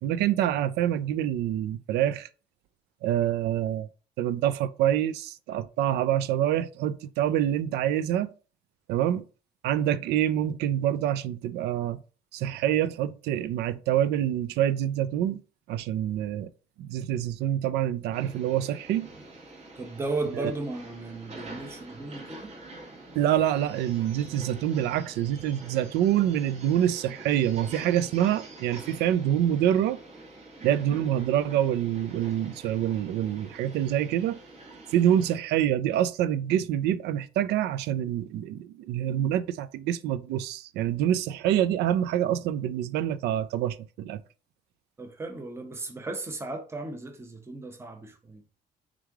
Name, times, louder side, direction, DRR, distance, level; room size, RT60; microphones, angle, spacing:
voice 1, 0.0-2.3 3.0-3.9 4.2-8.3 8.9-9.2 9.6-12.0 12.3-15.4 15.7-16.5 16.8-19.1 20.3-20.5 23.2-30.0 30.6-34.4 34.9-44.2, right 11 dB, 80° right, 0.4 m, -26 dB
sound 1, 18.1-35.4, right 2 dB, 40° right, 1.2 m, -46 dB
voice 2, 19.7-22.5 45.0-48.4, right 2 dB, 15° right, 0.8 m, -35 dB
3.6 x 3.1 x 3.5 m
cardioid pair, 110°, 17 cm